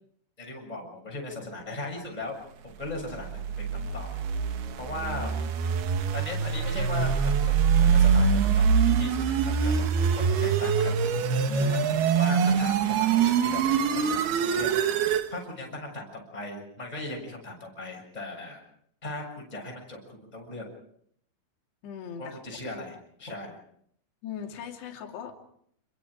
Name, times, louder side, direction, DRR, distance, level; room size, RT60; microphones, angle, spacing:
voice 1, 0.4-2.4 2.6-4.1 4.8-5.3 6.1-9.8 10.1-10.9 11.6-13.6 13.9-14.7 15.3-18.6 19.0-20.6 22.2-23.6, left 2 dB, 10° left, 0 dB, 6.8 m, -38 dB
sound 1, 3.1-15.3, right 6 dB, 65° right, 3.0 m, -24 dB
voice 2, 11.5-11.8 21.8-22.4 24.2-25.4, left 7 dB, 60° left, 1 dB, 4.7 m, -39 dB
29.5 x 22.5 x 5.0 m, 0.68 s
omnidirectional pair, 5.7 m